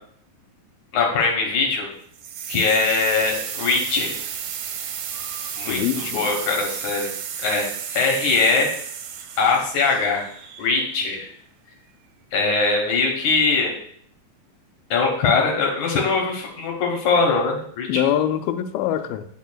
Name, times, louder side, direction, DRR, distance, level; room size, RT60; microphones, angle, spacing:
voice 1, 0.9-1.9 2.5-4.2 5.6-7.1 7.4-8.7 9.4-10.2 10.6-11.3 12.3-13.7 14.9-18.0, left 4 dB, 65° left, 0 dB, 2.2 m, -21 dB
sound 1, 2.1-11.0, right 8 dB, 75° right, 1.9 m, -33 dB
voice 2, 5.7-6.3 17.9-19.3, left 10 dB, 90° left, 9 dB, 2.4 m, -24 dB
9.1 x 5.4 x 2.2 m, 0.65 s
omnidirectional pair, 4.2 m